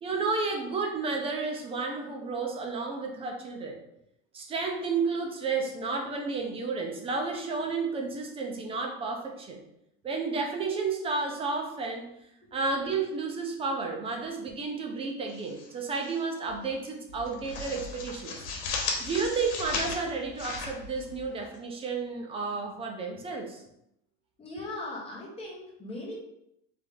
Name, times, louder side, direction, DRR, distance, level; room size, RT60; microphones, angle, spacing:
voice 1, 0.0-3.8 4.3-9.6 10.0-12.1 12.5-18.5 19.0-23.6, right 4 dB, 15° right, 2 dB, 0.4 m, -32 dB
sound 1, 15.3-16.2 16.5-16.7 17.1-21.6, left 4 dB, 75° left, 1.2 m, -36 dB
voice 2, 24.4-26.1, left 2 dB, 15° left, -4 dB, 1.2 m, -39 dB
3.4 x 3.2 x 3.8 m, 0.79 s
cardioid pair, 165°, 34 cm